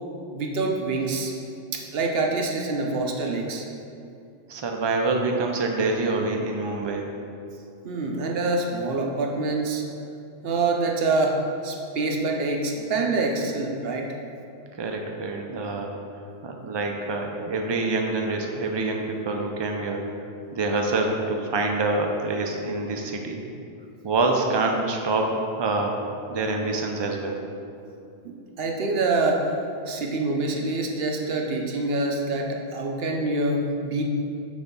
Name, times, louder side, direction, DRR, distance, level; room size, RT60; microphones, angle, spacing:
voice 1, 0.3-1.3 1.7-3.7 7.8-9.8 10.4-11.4 11.6-14.1 28.2-29.5 29.9-34.0, right 3 dB, 65° right, 1 dB, 0.9 m, -26 dB
voice 2, 4.5-7.1 14.8-15.9 16.4-20.0 20.5-23.4 24.0-26.0 26.3-27.4, right 3 dB, 40° right, 2 dB, 0.4 m, -26 dB
6.2 x 3.4 x 5.3 m, 2.6 s
omnidirectional pair, 1.1 m